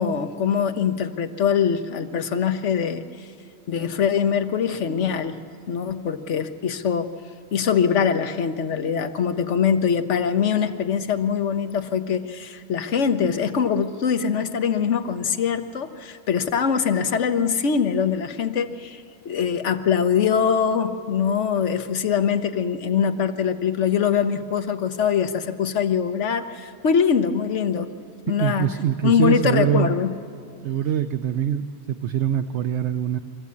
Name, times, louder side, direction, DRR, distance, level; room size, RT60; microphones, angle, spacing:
voice 1, 0.0-3.0 3.7-5.4 5.7-7.2 7.5-27.9 28.3-28.7 29.0-30.1, left 7 dB, 65° left, 9 dB, 1.2 m, -23 dB
voice 2, 28.4-29.9 30.6-33.2, right 10 dB, 65° right, 8 dB, 0.9 m, -23 dB
24.0 x 14.5 x 8.4 m, 2.2 s
omnidirectional pair, 1.3 m